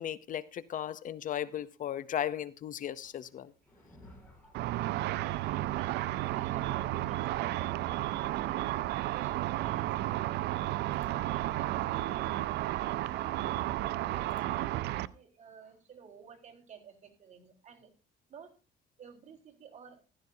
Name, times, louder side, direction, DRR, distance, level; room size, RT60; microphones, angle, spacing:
voice 1, 0.0-3.5, left 10 dB, 50° left, 0.6 m, -36 dB
Thunder, 2.9-12.8 13.6-13.7 14.7-14.8 15.6-15.8, equal, 10° left, 7.4 m, -61 dB
voice 2, 4.3-12.5 12.8-13.7 14.1-17.9 18.3-18.5 19.0-20.0, right 7 dB, 45° right, 3.8 m, -53 dB
Car / Traffic noise roadway noise / Engine, 4.5-15.1, right 15 dB, 80° right, 0.5 m, -32 dB
15.0 x 13.0 x 2.7 m
cardioid pair, 110°, 17 cm